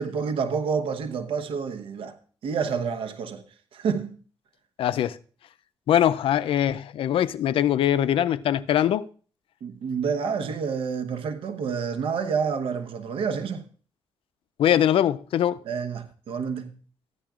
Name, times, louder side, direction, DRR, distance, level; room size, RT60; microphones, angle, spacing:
voice 1, 0.0-2.2 2.4-3.4 3.7-4.2 9.6-13.6 15.6-16.7, right 6 dB, 90° right, 0.9 m, -28 dB
voice 2, 4.8-5.2 5.9-9.1 14.6-15.6, left 11 dB, 85° left, 0.4 m, -22 dB
14.0 x 10.5 x 2.4 m
cardioid pair, 80°, 9 cm